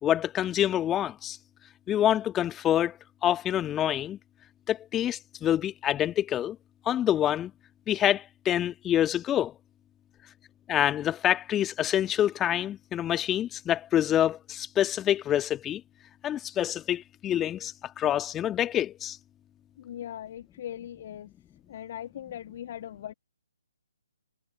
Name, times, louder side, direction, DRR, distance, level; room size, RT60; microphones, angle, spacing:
voice 1, 0.0-1.4 1.9-3.0 3.2-4.2 4.7-6.6 6.9-7.5 7.9-9.5 10.7-15.8 16.2-19.2, left 11 dB, 15° left, 1.8 m, -26 dB
voice 2, 19.8-21.3 21.7-23.1, left 11 dB, 40° left, 2.9 m, -39 dB
figure-of-eight pair, 140°, 0 cm